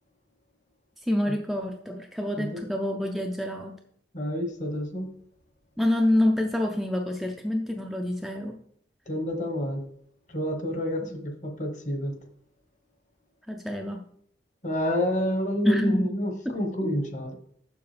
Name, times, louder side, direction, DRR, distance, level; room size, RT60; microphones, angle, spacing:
voice 1, 1.0-3.8 5.8-8.6 11.0-11.1 13.5-14.0 15.6-16.1 16.4-16.6, left 1 dB, ahead, 1 dB, 0.4 m, -27 dB
voice 2, 2.3-2.7 4.1-5.1 9.1-9.8 10.3-12.1 14.6-17.3, equal, 40° left, 4 dB, 1.2 m, -28 dB
6.9 x 6.9 x 3.3 m, 0.67 s
head